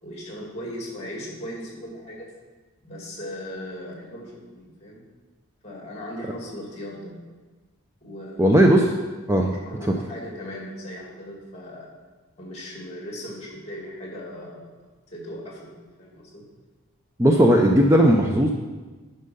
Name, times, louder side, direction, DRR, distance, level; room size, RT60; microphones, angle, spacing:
voice 1, 0.0-2.3 2.8-5.0 5.6-7.2 8.0-8.7 9.5-11.9 12.4-14.7 15.1-16.4, equal, 30° left, -2 dB, 2.3 m, -38 dB
voice 2, 8.4-8.9 9.3-9.5 9.8-9.9 17.2-18.5, equal, 15° right, 1 dB, 0.4 m, -17 dB
9.9 x 5.5 x 5.4 m, 1.3 s
head